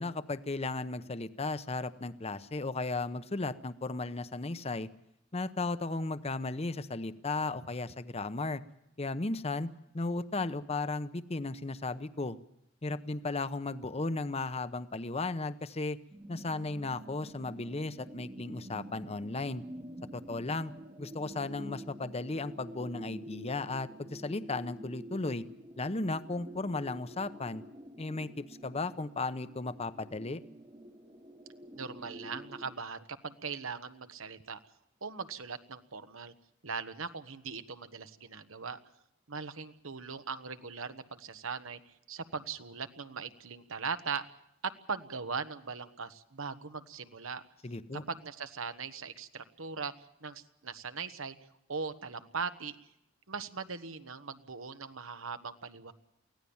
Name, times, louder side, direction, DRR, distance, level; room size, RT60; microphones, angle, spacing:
voice 1, 0.0-4.9 5.3-8.6 9.0-12.4 12.8-16.0 16.3-19.6 20.1-20.7 21.0-25.4 25.8-27.6 28.0-30.4 47.6-48.0, left 3 dB, 30° left, 13 dB, 0.8 m, -35 dB
sound 1, 16.1-32.8, equal, 25° right, 1.1 m, -48 dB
voice 2, 31.7-34.6 35.0-36.3 36.6-38.8 39.3-44.3 44.6-47.4 48.1-49.9 50.2-51.3 51.7-52.8 53.3-55.9, right 5 dB, 90° right, 10 dB, 1.4 m, -40 dB
24.0 x 16.5 x 7.1 m, 0.82 s
head